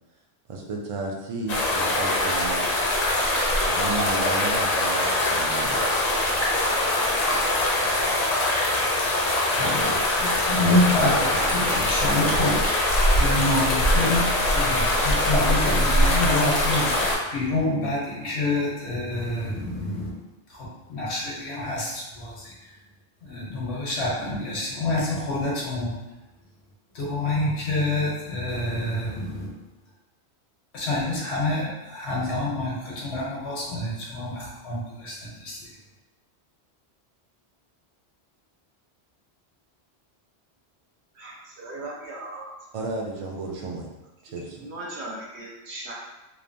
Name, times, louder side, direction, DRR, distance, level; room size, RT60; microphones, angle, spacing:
voice 1, 0.5-2.7 3.7-5.9 42.7-43.9 44.2-44.6, right 3 dB, 55° right, -1 dB, 0.3 m, -33 dB
sound 1, 1.5-17.2, left 1 dB, 50° left, 0.5 m, -23 dB
voice 2, 9.6-12.6 13.2-20.2 20.5-22.7 23.2-26.0 26.9-29.5 30.7-35.7, left 2 dB, 90° left, -5 dB, 1.1 m, -27 dB
voice 3, 41.2-42.5 44.3-45.9, right 2 dB, 85° right, -4 dB, 1.1 m, -38 dB
3.1 x 2.1 x 2.5 m, 1.0 s
omnidirectional pair, 1.1 m